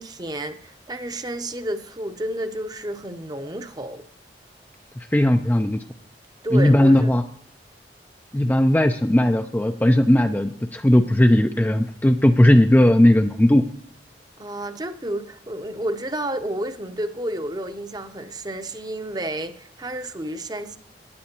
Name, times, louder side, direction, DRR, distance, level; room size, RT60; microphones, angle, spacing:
voice 1, 0.0-4.0 6.4-7.1 14.4-20.8, right 1 dB, 25° right, 0.7 m, -31 dB
voice 2, 5.1-5.8 6.5-7.2 8.3-13.6, left 1 dB, 10° left, 0.4 m, -17 dB
16.0 x 9.6 x 2.9 m
head